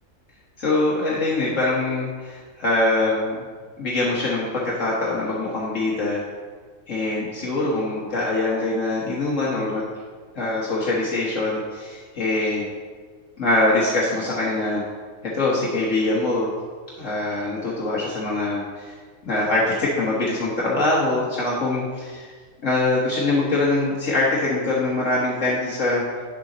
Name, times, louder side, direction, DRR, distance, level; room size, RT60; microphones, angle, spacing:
voice 1, 0.6-3.4 3.8-6.2 6.9-9.9 10.4-12.6 13.4-14.8 15.3-16.5 17.0-18.9 19.3-22.3 22.6-26.0, left 2 dB, 70° left, -5 dB, 1.7 m, -23 dB
9.7 x 7.1 x 3.9 m, 1.5 s
omnidirectional pair, 1.4 m